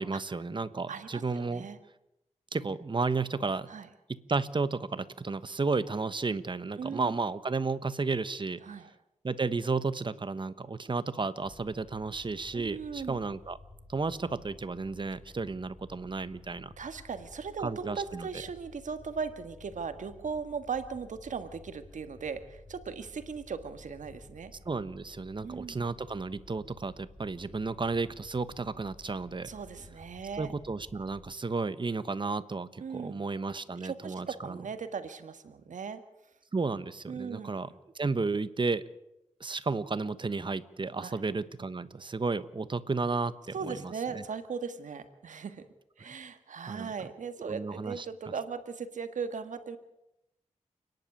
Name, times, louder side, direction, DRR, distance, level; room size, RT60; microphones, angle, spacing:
voice 1, 0.0-1.7 2.5-3.7 4.1-8.6 9.2-13.6 13.9-16.7 17.6-18.3 24.6-29.5 30.4-34.6 36.5-37.7 37.9-38.8 39.4-44.2 46.7-46.9 47.4-48.1, right 4 dB, 40° right, 14 dB, 1.1 m, -33 dB
voice 2, 0.9-1.8 3.7-3.9 6.8-7.1 8.6-8.9 12.5-13.2 16.8-24.5 25.4-25.9 29.4-30.5 32.8-33.2 33.8-36.0 37.1-37.5 41.0-41.2 43.5-45.6 46.0-49.8, right 6 dB, 90° right, 9 dB, 1.6 m, -38 dB
sound 1, 11.4-31.3, left 1 dB, 15° left, 2.6 m, -53 dB
30.0 x 11.0 x 8.5 m, 0.86 s
wide cardioid pair, 80°, 13 cm